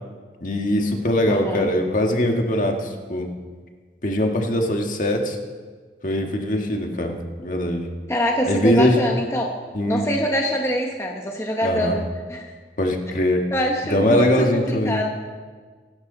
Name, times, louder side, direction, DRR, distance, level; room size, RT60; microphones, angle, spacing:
voice 1, 0.4-3.3 4.0-5.4 6.0-7.8 8.4-9.0 9.7-10.1 11.6-12.0 12.8-13.4 13.8-15.0, left 1 dB, 45° left, 2 dB, 1.8 m, -21 dB
voice 2, 1.3-1.7 8.1-9.5 9.9-12.0 12.3-12.5 13.5-15.1, equal, 15° left, 1 dB, 1.1 m, -24 dB
25.5 x 12.0 x 4.0 m, 1.5 s
head